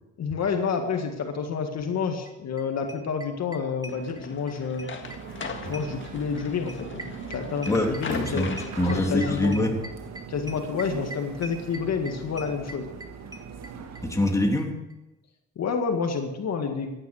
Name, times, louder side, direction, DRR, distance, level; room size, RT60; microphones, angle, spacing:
voice 1, 0.2-4.9 5.7-8.5 8.9-9.7 10.3-12.9 15.6-16.9, left 5 dB, 60° left, 4 dB, 1.9 m, -29 dB
sound 1, 2.3-2.4 2.6-2.7 2.9-4.5 4.8-14.0 14.3-14.4 14.6-14.7 14.9-15.0, right 1 dB, 10° right, 1.9 m, -41 dB
sound 2, 3.9-9.5, left 5 dB, 40° left, 1.9 m, -40 dB
sound 3, 5.0-14.4, right 6 dB, 60° right, 1.8 m, -41 dB
voice 2, 7.7-9.8 14.0-14.8, left 1 dB, 10° left, 1 dB, 3.0 m, -25 dB
14.5 x 10.5 x 6.5 m, 0.98 s
cardioid pair, 90°, 30 cm